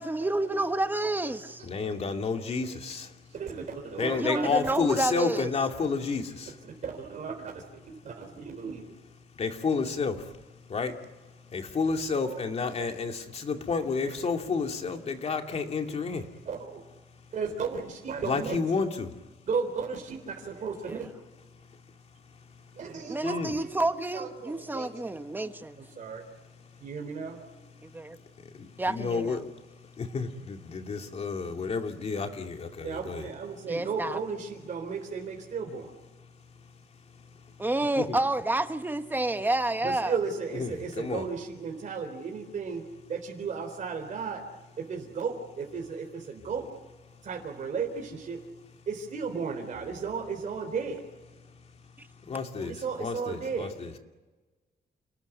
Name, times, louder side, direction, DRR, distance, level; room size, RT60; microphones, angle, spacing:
voice 1, 0.0-1.6 4.2-5.5 20.9-21.0 23.1-25.8 27.8-28.2 28.8-29.4 33.7-34.2 37.6-40.1 52.6-52.7, right 2 dB, 10° right, 1.2 m, -29 dB
voice 2, 1.7-3.1 4.0-6.5 9.4-10.4 10.7-11.0 11.5-16.3 18.2-19.1 23.2-23.5 28.5-29.4 30.0-33.2 38.0-38.2 40.6-41.2 52.3-53.7, left 4 dB, 40° left, 2.6 m, -30 dB
voice 3, 3.3-5.0 6.8-8.9 9.8-9.9 12.0-12.4 12.8-12.9 13.8-14.2 15.8-16.8 17.3-18.6 19.5-21.1 22.7-25.1 25.8-26.2 26.8-27.4 29.0-29.2 32.8-35.9 39.8-44.4 44.8-46.7 47.2-48.4 48.9-51.0 52.7-53.7, right 5 dB, 50° right, 3.9 m, -35 dB
30.0 x 19.5 x 9.3 m
wide cardioid pair, 175°, 17 cm